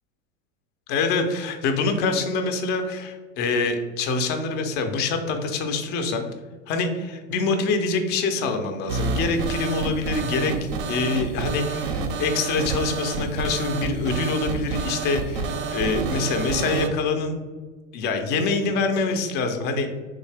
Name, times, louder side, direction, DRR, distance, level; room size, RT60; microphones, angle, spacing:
voice 1, 0.9-6.3 6.7-10.6 10.9-17.3 17.9-19.9, left 3 dB, 25° left, 5 dB, 0.4 m, -25 dB
sound 1, 8.9-16.9, right 4 dB, 45° right, 0.5 m, -28 dB
3.7 x 2.7 x 3.2 m, 1.4 s
hypercardioid pair, 120°, 41 cm